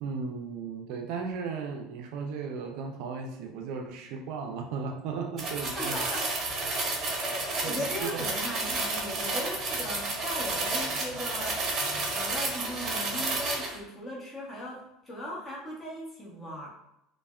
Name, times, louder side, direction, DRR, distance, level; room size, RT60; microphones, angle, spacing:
voice 1, 0.0-6.0 7.1-7.2 7.6-8.3, right 5 dB, 70° right, 4 dB, 0.4 m, -36 dB
sound 1, 5.4-13.8, right 2 dB, 40° right, 0.8 m, -31 dB
voice 2, 5.6-6.2 7.2-11.6 12.1-16.7, equal, 20° left, -5 dB, 0.9 m, -38 dB
3.2 x 2.1 x 2.3 m, 0.85 s
supercardioid pair, 115°, 0 cm